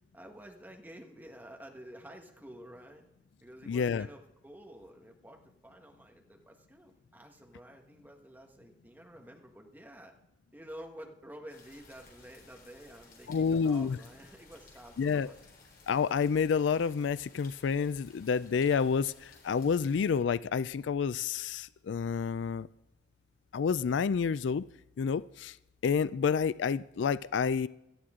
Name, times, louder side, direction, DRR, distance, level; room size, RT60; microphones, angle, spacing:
voice 1, 0.1-3.0 3.4-10.1 10.5-15.4, equal, 10° right, 2 dB, 1.5 m, -50 dB
voice 2, 3.7-4.1 13.3-14.0 15.0-15.3 15.9-22.7 23.5-24.6 25.0-25.6 25.8-27.7, left 6 dB, 75° left, 17 dB, 0.4 m, -29 dB
sound 1, 11.5-20.1, left 3 dB, 50° left, 3.9 m, -58 dB
17.5 x 13.0 x 3.7 m, 0.90 s
head